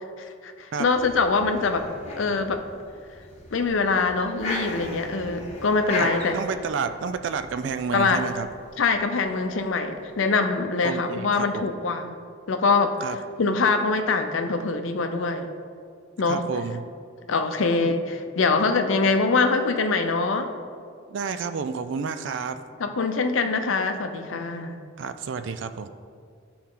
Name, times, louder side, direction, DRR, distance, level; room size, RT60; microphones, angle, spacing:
voice 1, 0.2-1.9 2.2-2.6 3.5-6.4 7.9-8.2 8.8-12.2 12.5-13.1 13.4-15.5 16.2-16.5 17.3-20.5 22.8-24.8, left 4 dB, 80° left, 7 dB, 0.6 m, -24 dB
sound 1, 0.9-10.0, left 1 dB, 35° left, 1.3 m, -38 dB
voice 2, 6.0-8.5 10.8-11.7 13.0-13.2 16.3-16.8 21.1-22.6 25.0-25.9, right 5 dB, 70° right, 10 dB, 0.4 m, -30 dB
11.0 x 4.2 x 3.8 m, 2.2 s
head